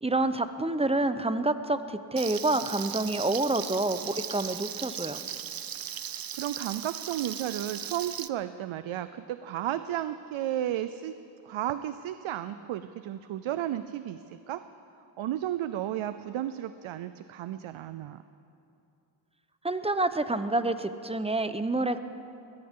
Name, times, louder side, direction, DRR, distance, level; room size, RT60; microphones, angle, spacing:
voice 1, 0.0-5.2 19.6-22.0, right 2 dB, 15° right, 11 dB, 0.9 m, -28 dB
Frying (food), 2.2-8.3, right 9 dB, 50° right, 0.7 m, -37 dB
voice 2, 6.3-11.1 11.4-14.6 15.2-18.2, right 12 dB, 90° right, 12 dB, 0.5 m, -33 dB
22.0 x 17.5 x 3.7 m, 2.7 s
cardioid pair, 55°, 46 cm